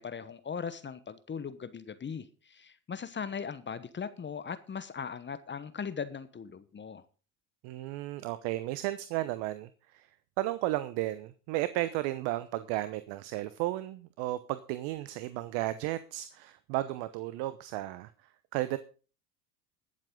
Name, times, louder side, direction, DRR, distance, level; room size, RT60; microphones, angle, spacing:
voice 1, 0.0-7.0, left 6 dB, 25° left, 1.1 m, -39 dB
voice 2, 7.6-10.1 10.4-18.1 18.5-18.8, right 16 dB, 60° right, 1.0 m, -34 dB
20.0 x 7.6 x 3.8 m
hypercardioid pair, 85°, 48 cm